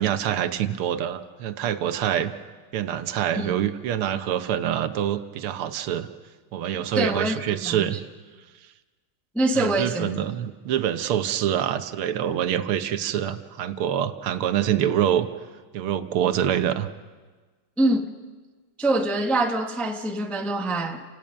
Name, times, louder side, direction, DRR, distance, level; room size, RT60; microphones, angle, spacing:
voice 1, 0.0-2.3 2.7-6.1 6.5-8.0 9.6-15.3 15.7-16.9, right 10 dB, 90° right, 10 dB, 1.8 m, -25 dB
voice 2, 6.9-8.0 9.3-10.1 17.8-18.1 18.8-21.0, right 2 dB, ahead, 5 dB, 0.5 m, -24 dB
30.0 x 17.0 x 6.3 m, 1.4 s
omnidirectional pair, 2.3 m